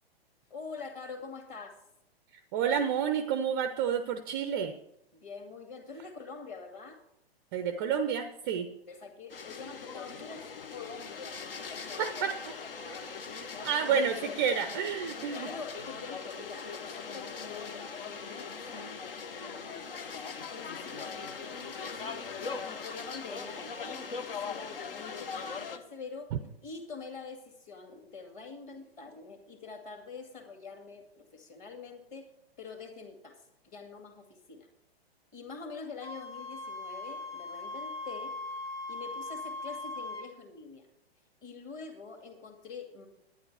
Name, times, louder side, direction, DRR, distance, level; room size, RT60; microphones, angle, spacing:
voice 1, 0.5-1.8 5.1-7.0 8.5-12.3 12.6-13.4 13.9-14.4 15.3-22.2 22.6-26.3 26.6-32.3 32.6-34.7 35.3-38.3 38.9-40.9 41.4-43.1, left 4 dB, 25° left, 4 dB, 2.0 m, -45 dB
voice 2, 2.5-4.7 7.5-8.7 12.0-12.3 13.6-15.5, right 7 dB, 20° right, 10 dB, 0.4 m, -29 dB
sound 1, 9.3-25.8, left 5 dB, 60° left, 1.0 m, -40 dB
Wind instrument woodwind instrument, 36.0-40.3, left 2 dB, 80° left, 2.8 m, -40 dB
11.0 x 9.5 x 4.6 m, 0.78 s
figure-of-eight pair, 115°, 31 cm